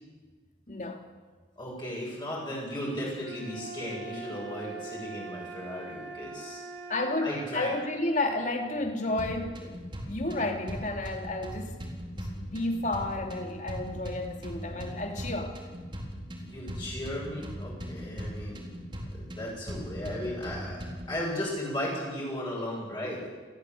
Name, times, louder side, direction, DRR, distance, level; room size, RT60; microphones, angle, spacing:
voice 1, 0.7-1.0 6.9-11.7 12.4-15.6, left 2 dB, 40° left, 3 dB, 2.8 m, -31 dB
voice 2, 1.6-6.6 7.2-7.7 16.4-18.6 19.1-23.3, left 1 dB, 25° left, -4 dB, 7.5 m, -36 dB
sound 1, 3.2-7.3, right 3 dB, 85° right, 7.6 m, -42 dB
sound 2, 9.2-21.2, equal, 25° right, 4.1 m, -39 dB
29.5 x 14.5 x 8.4 m, 1.4 s
head